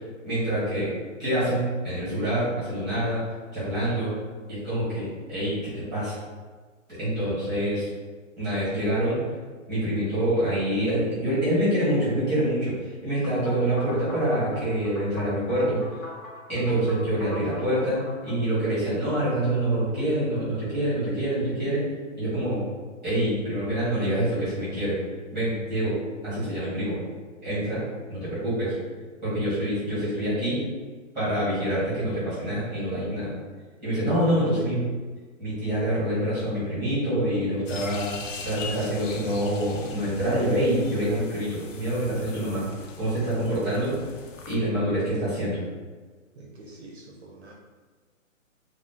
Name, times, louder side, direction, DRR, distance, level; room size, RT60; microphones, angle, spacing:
voice 1, 0.2-0.9 1.2-3.3 3.5-4.1 4.5-6.2 6.9-7.9 8.4-9.2 9.7-12.7 13.0-15.8 16.5-21.8 22.2-22.6 23.0-25.0 25.3-26.0 26.2-27.0 27.4-27.8 28.1-28.8 29.2-30.6 31.1-33.3 33.8-34.8 35.4-38.1 38.4-42.7 43.0-44.0 44.5-45.6, right 1 dB, ahead, -12 dB, 0.9 m, -26 dB
sound 1, 13.2-18.4, left 1 dB, 90° left, 0.9 m, -42 dB
sound 2, 37.6-44.5, left 4 dB, 65° left, 0.5 m, -41 dB
voice 2, 46.4-47.5, right 2 dB, 55° right, -1 dB, 0.5 m, -46 dB
2.3 x 2.0 x 3.5 m, 1.4 s
hypercardioid pair, 175°, 40 cm